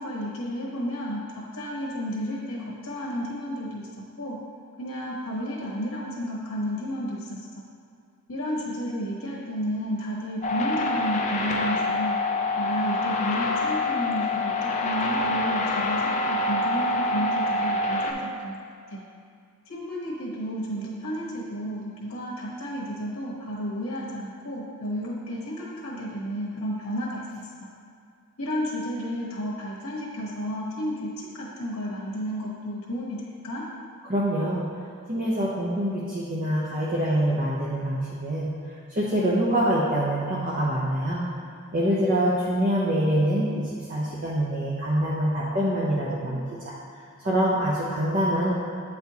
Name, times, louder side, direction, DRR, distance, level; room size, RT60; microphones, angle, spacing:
voice 1, 0.0-3.9 4.2-4.4 4.8-7.4 8.3-12.2 12.6-18.6 18.9-19.0 19.7-27.4 28.4-33.6, equal, 80° left, -5 dB, 1.1 m, -32 dB
sound 1, 10.4-18.1, left 2 dB, 30° left, 0.4 m, -26 dB
voice 2, 34.0-34.6 35.1-38.5 38.9-41.2 41.7-46.7 47.2-48.5, right 1 dB, 40° right, -7 dB, 0.7 m, -25 dB
9.1 x 4.3 x 2.8 m, 2.3 s
head